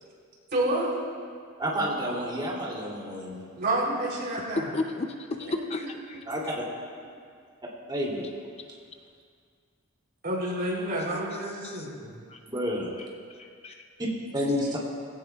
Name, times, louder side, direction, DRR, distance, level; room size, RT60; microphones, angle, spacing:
voice 1, 0.5-0.9 3.6-4.7 5.5-5.9 10.2-12.1, right 1 dB, 50° right, -3 dB, 3.7 m, -29 dB
voice 2, 1.6-3.4 5.4-5.5 6.3-6.4 7.9-8.3 12.5-12.9 14.0-14.1 14.3-14.8, equal, 20° right, -4 dB, 3.0 m, -29 dB
voice 3, 4.7-6.2 11.6-11.9 12.3-12.4 13.0-13.1 13.4-13.8, left 3 dB, 30° left, 4 dB, 0.6 m, -34 dB
19.5 x 17.0 x 2.4 m, 2.1 s
head